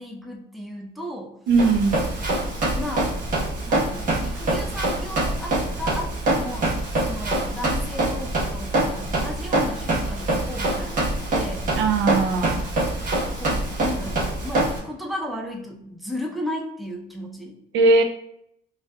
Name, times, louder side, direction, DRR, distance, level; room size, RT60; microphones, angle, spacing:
voice 1, 0.0-1.3 2.7-3.1 3.7-6.7 7.0-11.7 13.1-17.6, left 1 dB, ahead, 0 dB, 0.6 m, -35 dB
Run, 1.5-14.8, right 2 dB, 45° right, 1.2 m, -25 dB
voice 2, 1.5-2.0 11.7-12.6 17.7-18.0, right 3 dB, 80° right, 6 dB, 0.5 m, -19 dB
5.3 x 2.4 x 2.3 m, 0.73 s
cardioid pair, 110°, 19 cm